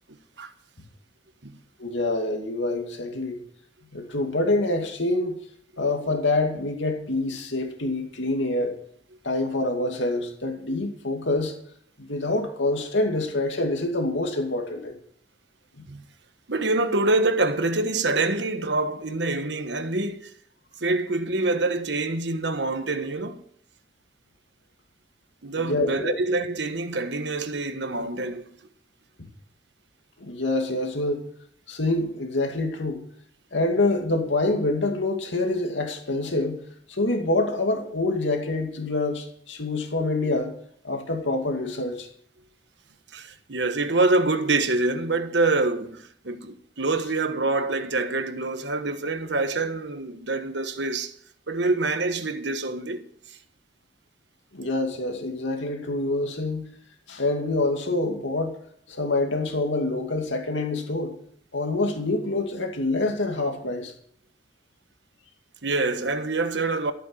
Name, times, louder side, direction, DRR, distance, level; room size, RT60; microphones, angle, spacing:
voice 1, 1.8-3.4 3.9-5.4 5.8-8.7 9.2-11.6 12.0-15.0 15.7-15.8 25.6-26.2 30.2-31.3 31.7-33.0 33.5-40.5 40.8-42.1 54.5-56.7 57.1-58.6 58.9-61.1 61.5-63.9, left 2 dB, 80° left, 2.4 m, -26 dB
voice 2, 16.5-20.3 20.8-23.4 25.4-28.5 43.1-51.1 51.5-53.1 65.6-66.9, right 2 dB, 70° right, 1.3 m, -26 dB
14.0 x 9.2 x 7.2 m
head